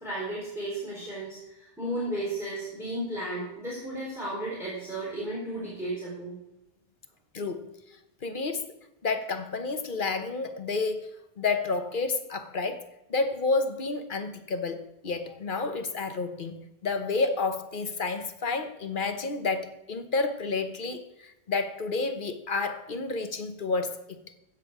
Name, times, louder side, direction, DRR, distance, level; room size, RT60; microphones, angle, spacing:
voice 1, 0.0-6.4, right 1 dB, ahead, -8 dB, 4.3 m, -34 dB
voice 2, 7.3-7.7 8.2-8.6 9.0-11.1 11.4-12.8 13.1-24.0, left 3 dB, 55° left, 8 dB, 1.1 m, -30 dB
16.0 x 7.4 x 4.8 m, 0.91 s
omnidirectional pair, 1.1 m